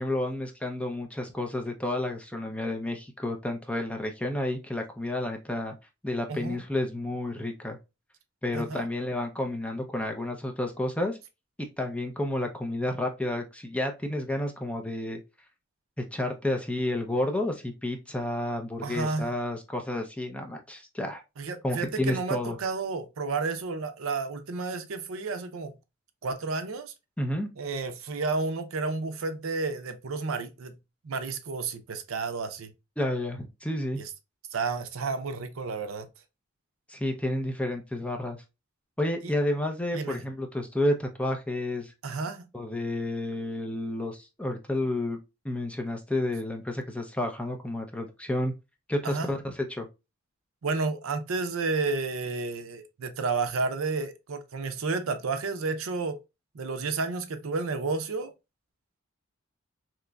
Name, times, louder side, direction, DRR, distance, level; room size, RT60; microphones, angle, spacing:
voice 1, 0.0-5.7 6.0-7.8 8.4-11.2 11.6-15.2 16.1-21.2 21.6-22.6 27.2-27.5 33.0-34.0 36.9-38.4 39.0-41.9 42.5-45.2 45.4-48.5 48.9-49.9, left 1 dB, 5° left, 0.5 m, -30 dB
voice 2, 8.5-8.9 18.8-19.3 21.4-25.7 26.2-26.9 27.6-30.8 31.0-32.7 34.0-34.1 34.5-36.1 39.2-39.3 39.9-40.2 42.0-42.5 49.0-49.3 50.6-56.2 56.5-58.3, right 4 dB, 70° right, 0.5 m, -31 dB
3.7 x 2.9 x 2.2 m
head